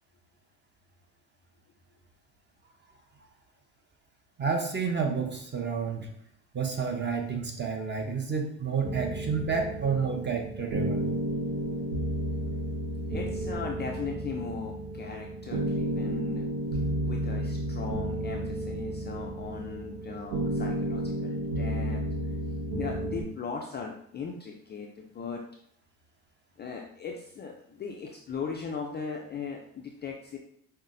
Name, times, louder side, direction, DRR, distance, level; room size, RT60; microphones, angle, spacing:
voice 1, 4.4-6.1 6.5-11.1, right 5 dB, 25° right, 3 dB, 0.8 m, -30 dB
sound 1, 8.8-23.2, right 1 dB, 75° right, 1.0 m, -32 dB
voice 2, 13.1-16.4 17.0-22.0 22.7-25.4 26.6-30.4, left 5 dB, 25° left, 0 dB, 0.4 m, -38 dB
5.4 x 2.1 x 2.6 m, 0.69 s
supercardioid pair, 80°, 42 cm